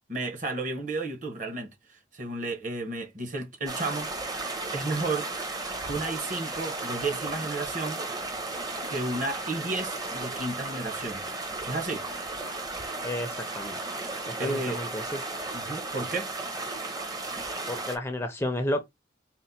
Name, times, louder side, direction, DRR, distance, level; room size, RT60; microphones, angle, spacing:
voice 1, 0.1-1.7 2.1-4.1 4.3-5.3 5.9-8.0 8.9-11.2 11.7-12.0 14.4-14.8 15.5-16.3, right 2 dB, 40° right, 1.1 m, -32 dB
sound 1, 3.7-18.0, right 2 dB, 20° right, 0.7 m, -35 dB
voice 2, 13.0-13.8 14.3-15.0 17.7-18.8, left 1 dB, 10° left, 0.5 m, -31 dB
4.3 x 2.1 x 4.1 m
head